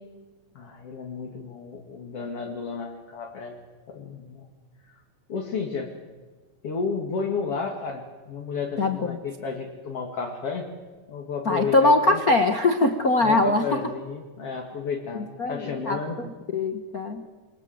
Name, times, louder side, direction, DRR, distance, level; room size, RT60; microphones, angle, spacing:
voice 1, 0.5-3.6 3.9-4.5 5.3-5.9 6.6-10.7 11.1-12.2 13.2-16.2, left 5 dB, 45° left, 2 dB, 2.9 m, -32 dB
voice 2, 8.8-9.2 11.4-13.8 15.1-17.2, left 2 dB, 80° left, 6 dB, 0.8 m, -22 dB
29.0 x 24.0 x 7.9 m, 1.4 s
omnidirectional pair, 4.0 m